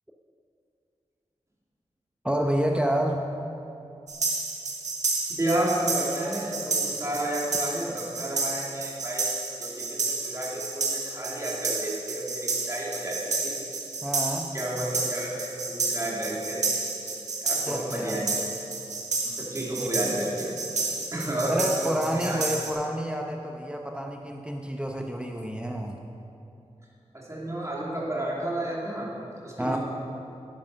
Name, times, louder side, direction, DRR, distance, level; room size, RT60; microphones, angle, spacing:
voice 1, 2.2-3.3 14.0-14.5 17.6-18.2 19.8-19.9 21.5-26.0 29.6-29.8, right 1 dB, 10° right, 2 dB, 0.8 m, -29 dB
sound 1, 4.1-22.7, right 3 dB, 85° right, 1.7 m, -31 dB
voice 2, 5.3-9.3 9.6-13.6 14.5-16.8 17.4-18.3 19.2-20.5 21.1-22.4 27.1-29.1 29.4-29.8, right 1 dB, 25° right, -5 dB, 3.4 m, -31 dB
11.0 x 10.5 x 5.8 m, 2.8 s
wide cardioid pair, 65°, 12 cm